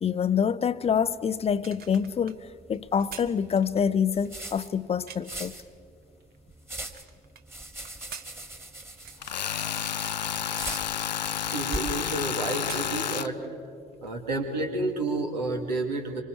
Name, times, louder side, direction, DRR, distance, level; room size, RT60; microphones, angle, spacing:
voice 1, 0.0-2.4 2.7-5.5, left 7 dB, 30° left, 0.6 m, -26 dB
sound 1, 0.9-13.0, right 1 dB, 10° right, 2.1 m, -43 dB
sound 2, 1.5-5.5 6.0-7.4 7.8-9.7 10.0-10.3 10.9-11.0 11.3-12.3 12.6-13.6 13.9-14.1, right 7 dB, 45° right, 1.3 m, -46 dB
Tools, 9.2-13.3, left 9 dB, 85° left, 0.4 m, -30 dB
voice 2, 11.5-13.4 14.0-16.2, right 2 dB, 80° right, 2.1 m, -30 dB
25.5 x 25.0 x 4.6 m
figure-of-eight pair, 55°, 21 cm